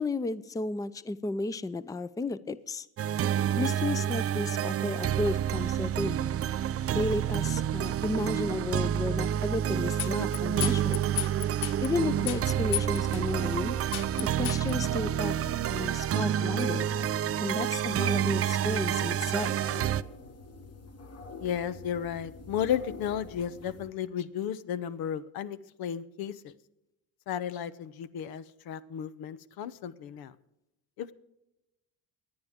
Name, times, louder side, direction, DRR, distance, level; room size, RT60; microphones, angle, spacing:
voice 1, 0.0-2.9 3.6-6.3 6.9-11.0 11.8-13.7 14.2-15.3 15.7-16.9 17.4-19.6, left 2 dB, 10° left, 16 dB, 0.5 m, -33 dB
sound 1, 3.0-20.0, right 10 dB, 40° right, 0.5 m, -29 dB
sound 2, 10.0-11.9 12.3-13.2 13.5-13.6 13.9-14.7, left 15 dB, 65° left, 0.5 m, -33 dB
sound 3, 12.0-23.9, left 3 dB, 45° left, 1.3 m, -46 dB
voice 2, 21.4-26.5 27.3-30.3 31.0-31.1, left 9 dB, 85° left, 15 dB, 0.9 m, -34 dB
24.5 x 9.8 x 3.6 m, 0.90 s
cardioid pair, 115°, 35 cm